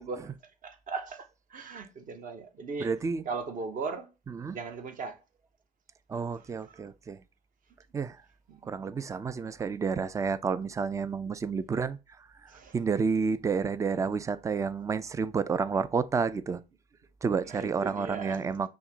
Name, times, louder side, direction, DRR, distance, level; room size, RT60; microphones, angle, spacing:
voice 1, 0.6-1.2 1.5-2.9 3.3-4.1 4.5-5.2 8.5-8.8 12.5-12.7 17.5-18.5, right 4 dB, 40° right, 0.9 m, -38 dB
voice 2, 2.8-3.2 4.3-4.6 6.1-7.2 7.9-8.2 8.6-12.0 12.4-16.6 17.2-18.7, right 5 dB, 15° right, 0.3 m, -30 dB
5.6 x 2.1 x 3.9 m
figure-of-eight pair, 55°, 21 cm